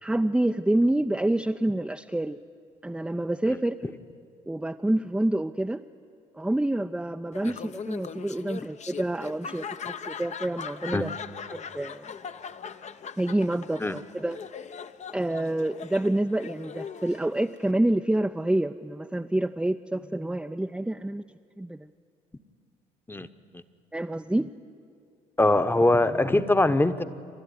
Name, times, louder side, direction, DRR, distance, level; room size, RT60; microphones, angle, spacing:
voice 1, 0.0-2.4 2.8-3.8 4.5-5.8 6.3-11.2 11.5-12.0 13.2-14.4 15.1-21.2 21.6-21.9 23.9-24.5, right 1 dB, 5° right, 6 dB, 0.5 m, -27 dB
Laughter, 7.3-17.7, left 6 dB, 40° left, 0.8 m, -40 dB
voice 2, 25.4-27.0, left 2 dB, 10° left, 11 dB, 1.0 m, -22 dB
28.5 x 12.5 x 9.5 m, 2.3 s
hypercardioid pair, 55°, 18 cm